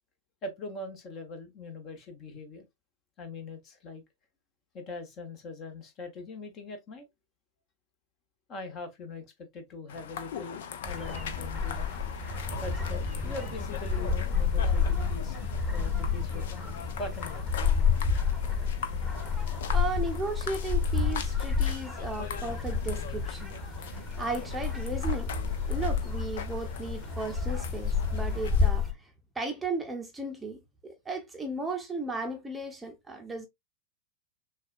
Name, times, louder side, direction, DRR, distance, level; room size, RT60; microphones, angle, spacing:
voice 1, 0.4-2.6 3.2-4.0 4.7-7.1 8.5-11.9 12.6-15.4 15.7-16.4 17.0-17.5, left 2 dB, 35° left, 1.3 m, -41 dB
sound 1, 9.9-28.7, left 8 dB, 60° left, 0.7 m, -42 dB
sound 2, 10.8-28.9, left 5 dB, 10° left, 1.4 m, -30 dB
voice 2, 19.4-23.6 23.8-25.3 25.7-33.5, right 3 dB, 10° right, 0.8 m, -36 dB
6.3 x 2.4 x 2.6 m
figure-of-eight pair, 100°, 0 cm